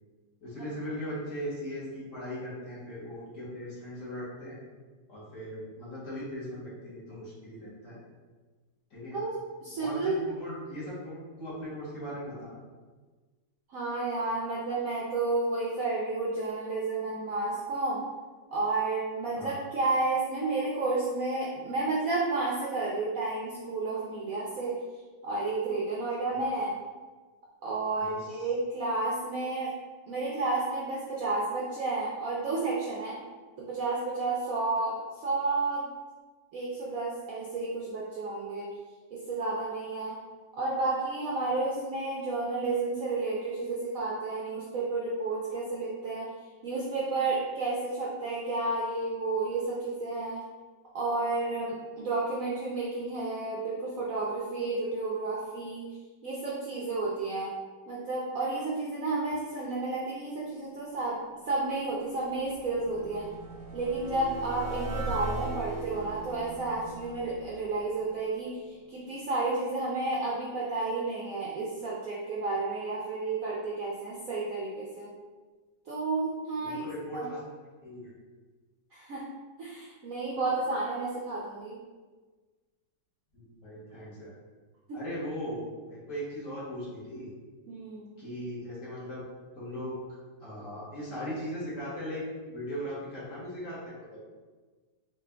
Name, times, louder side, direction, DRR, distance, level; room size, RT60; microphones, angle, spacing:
voice 1, 0.4-4.6 5.1-8.0 8.9-9.2 9.8-12.6 19.4-19.5 26.3-26.4 28.0-28.5 76.6-77.4 77.8-78.1 83.3-84.3 84.9-87.3 88.2-89.2 89.5-90.0 90.4-94.2, equal, 45° left, -8 dB, 1.5 m, -39 dB
voice 2, 9.1-10.2 13.7-18.0 18.5-24.7 25.2-26.8 27.6-29.7 30.1-33.2 33.6-35.9 36.5-38.7 39.1-40.2 40.6-46.3 46.6-50.4 50.9-55.9 56.2-57.5 57.9-61.2 61.5-63.3 63.7-75.1 75.9-76.9 77.1-77.3 78.9-79.3 79.6-81.8 84.9-85.0 87.7-88.2, right 3 dB, 70° right, -5 dB, 0.8 m, -31 dB
sound 1, 61.5-68.7, right 2 dB, 85° right, 1.3 m, -40 dB
4.1 x 2.4 x 3.3 m, 1.4 s
omnidirectional pair, 2.0 m